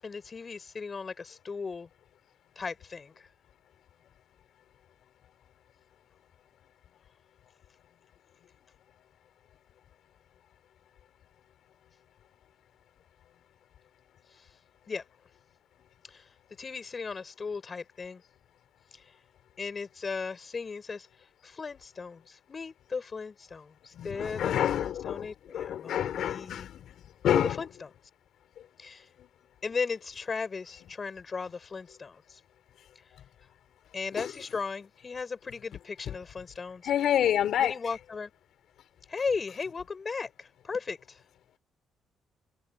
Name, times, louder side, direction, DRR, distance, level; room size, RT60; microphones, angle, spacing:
voice 1, 0.0-1.9 2.6-3.3 14.3-14.5 14.9-15.0 16.0-18.2 18.9-19.1 19.6-26.7 27.3-27.9 28.8-29.1 29.6-32.4 33.0-33.1 33.9-36.9 37.6-38.3 39.1-41.2, left 5 dB, 35° left, 7.9 m, -37 dB
voice 2, 24.0-26.8 27.2-27.7 34.1-34.4 36.9-38.0, left 10 dB, 75° left, 3.9 m, -28 dB
cardioid pair, 90°, 0 cm